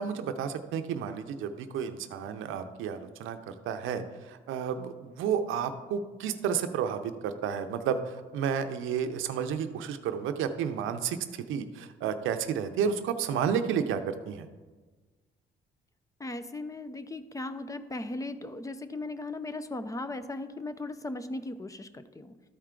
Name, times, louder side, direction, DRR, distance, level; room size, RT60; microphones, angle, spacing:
voice 1, 0.0-14.5, right 7 dB, 85° right, 8 dB, 0.6 m, -31 dB
voice 2, 16.2-22.3, left 2 dB, 15° left, 11 dB, 0.5 m, -37 dB
13.0 x 4.5 x 3.8 m, 1.3 s
cardioid pair, 90°, 20 cm